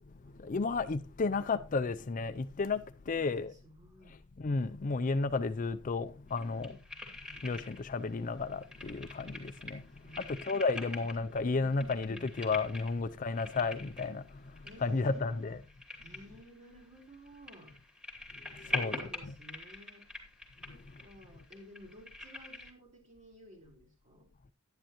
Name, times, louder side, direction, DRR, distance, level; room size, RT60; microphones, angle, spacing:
voice 1, 0.2-3.5 4.4-6.7 7.3-9.9 10.2-15.6 18.5-19.0, left 4 dB, 40° left, 0.4 m, -33 dB
voice 2, 3.0-4.2 6.3-6.8 10.0-10.4 14.6-15.6 16.0-17.7 18.6-20.0 20.7-24.3, equal, 35° right, 3.9 m, -54 dB
sound 1, 6.3-8.0 8.3-22.7, left 2 dB, 5° right, 2.6 m, -44 dB
11.5 x 10.5 x 3.0 m
head